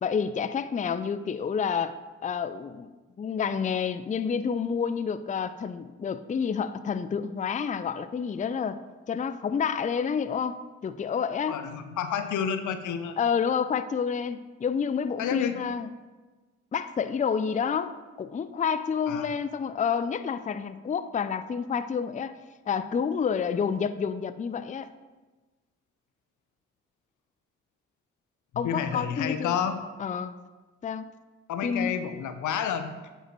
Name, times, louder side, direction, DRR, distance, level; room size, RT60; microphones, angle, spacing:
voice 1, 0.0-2.9 3.2-8.8 9.1-11.6 13.2-15.9 16.7-22.4 22.7-24.9 28.6-29.6 30.0-30.3 30.8-31.1 31.6-31.9, left 6 dB, 25° left, 12 dB, 0.4 m, -29 dB
voice 2, 11.5-13.2 15.2-15.6 19.1-19.3 28.6-29.8 31.5-32.9, left 8 dB, 75° left, 10 dB, 0.6 m, -30 dB
9.6 x 5.4 x 3.1 m, 1.2 s
hypercardioid pair, 40°, 31 cm